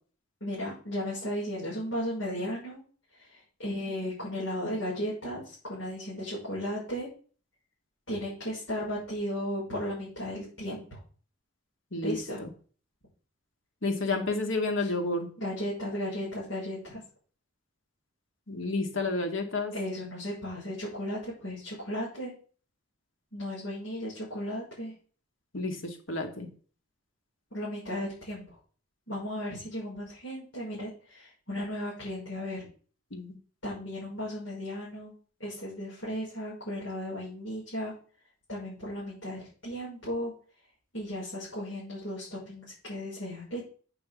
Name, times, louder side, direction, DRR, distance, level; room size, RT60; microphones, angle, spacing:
voice 1, 0.4-2.8 3.2-7.1 8.1-11.0 12.0-12.4 14.8-14.9 15.4-17.0 19.7-22.3 23.3-24.9 27.5-28.5 29.1-32.7 33.6-35.1 35.4-37.9 38.5-40.3 40.9-43.6, equal, 70° left, -7 dB, 6.3 m, -35 dB
voice 2, 11.9-12.5 13.8-15.3 18.5-19.7 25.5-26.5 33.1-33.4, left 2 dB, 90° left, 4 dB, 2.4 m, -30 dB
8.4 x 7.0 x 7.1 m, 0.41 s
head